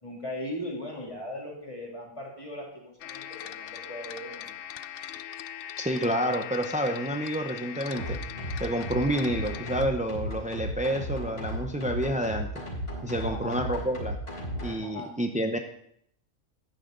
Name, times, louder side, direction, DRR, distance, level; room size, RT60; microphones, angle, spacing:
voice 1, 0.0-4.5 13.2-13.5 14.8-15.1, left 1 dB, 20° left, -2 dB, 3.1 m, -38 dB
sound 1, 3.0-9.8, left 10 dB, 70° left, 0.5 m, -40 dB
voice 2, 5.8-8.2 8.6-12.5 13.0-14.2 14.6-15.6, right 1 dB, 10° right, 5 dB, 0.3 m, -29 dB
sound 2, 7.9-14.8, equal, 40° left, 4.9 m, -35 dB
14.0 x 10.5 x 3.9 m, 0.70 s
omnidirectional pair, 1.5 m